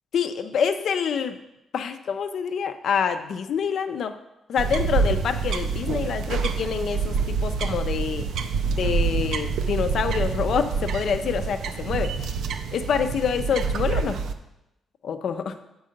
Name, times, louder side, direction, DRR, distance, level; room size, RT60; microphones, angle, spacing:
voice 1, 0.1-1.4 1.7-4.1 4.5-8.2 8.7-12.1 12.7-14.2 15.0-15.6, left 7 dB, 65° left, 9 dB, 0.6 m, -26 dB
sound 1, 4.6-14.3, right 5 dB, 75° right, 0.5 m, -27 dB
7.7 x 4.8 x 5.2 m, 0.91 s
cardioid pair, 95°, 0 cm